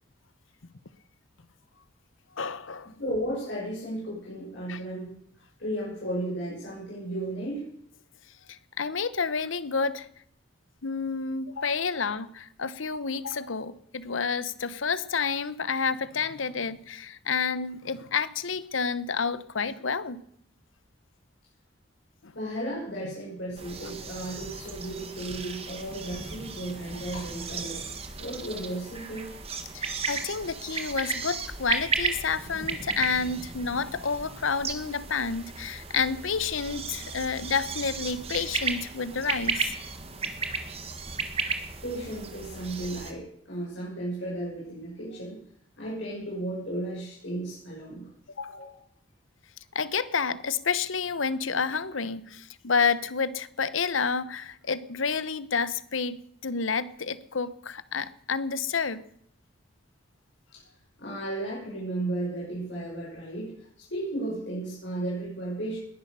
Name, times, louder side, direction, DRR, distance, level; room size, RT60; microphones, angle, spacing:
voice 1, 2.4-2.9 4.7-4.8 8.5-10.1 10.8-20.2 29.7-39.7 48.4-48.7 49.7-56.2 56.4-59.0, left 5 dB, 90° left, 1.0 m, -29 dB
voice 2, 3.0-7.7 22.3-27.8 28.2-29.4 41.8-45.4 45.8-48.1 48.5-48.8 60.5-60.6 61.0-65.8, right 1 dB, 70° left, 7.1 m, -34 dB
sound 1, 23.6-43.1, right 4 dB, 30° right, 1.8 m, -35 dB
19.5 x 11.0 x 6.9 m
head